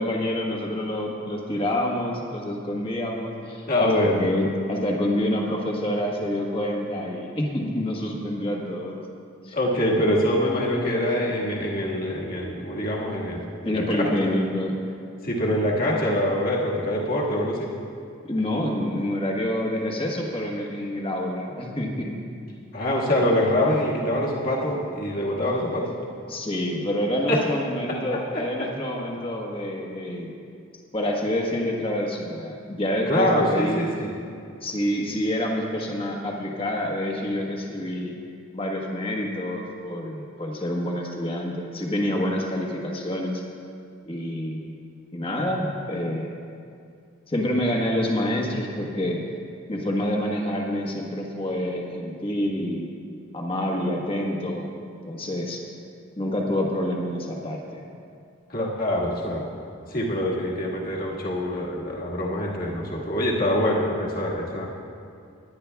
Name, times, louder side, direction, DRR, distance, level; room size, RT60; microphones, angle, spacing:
voice 1, 0.0-3.9 4.2-9.0 9.4-9.6 13.6-14.7 18.2-22.2 26.3-30.3 30.9-33.8 34.6-38.1 38.5-43.4 44.0-44.8 45.1-46.3 47.3-49.2 49.7-52.9 53.3-54.7 55.1-55.6 56.2-57.8, left 1 dB, 25° left, 0 dB, 1.3 m, -27 dB
voice 2, 3.7-4.2 9.5-14.3 15.2-17.7 22.7-25.9 27.3-27.4 27.9-28.7 33.1-34.1 58.5-59.5 59.9-64.7, left 1 dB, 45° left, -3 dB, 1.7 m, -25 dB
19.5 x 10.5 x 2.3 m, 2.4 s
head